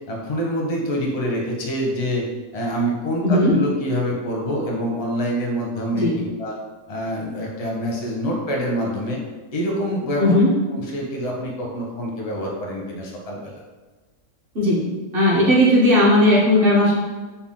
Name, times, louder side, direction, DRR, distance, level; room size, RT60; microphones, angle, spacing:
voice 1, 0.1-2.2 2.5-6.5 6.9-9.2 9.5-10.3 10.7-13.6, equal, 45° left, -2 dB, 0.5 m, -26 dB
voice 2, 3.2-3.5 6.0-6.2 10.2-10.5 14.5-14.8 15.1-16.9, left 1 dB, 50° right, -5 dB, 0.7 m, -16 dB
4.1 x 2.3 x 3.6 m, 1.3 s
omnidirectional pair, 1.6 m